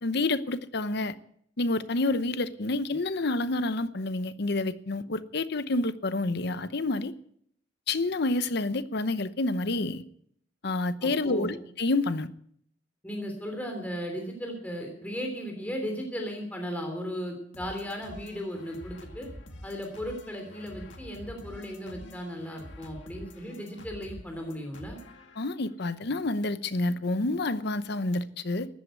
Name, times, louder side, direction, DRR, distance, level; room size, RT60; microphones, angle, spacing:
voice 1, 0.0-1.1 1.6-7.1 7.9-10.0 10.6-12.3 25.4-28.7, left 2 dB, 60° left, 0.8 m, -28 dB
voice 2, 11.0-11.5 13.0-19.3 19.6-25.0, equal, 10° left, 3.2 m, -36 dB
sound 1, 17.5-25.8, left 1 dB, 80° left, 2.2 m, -47 dB
14.5 x 11.5 x 8.2 m
head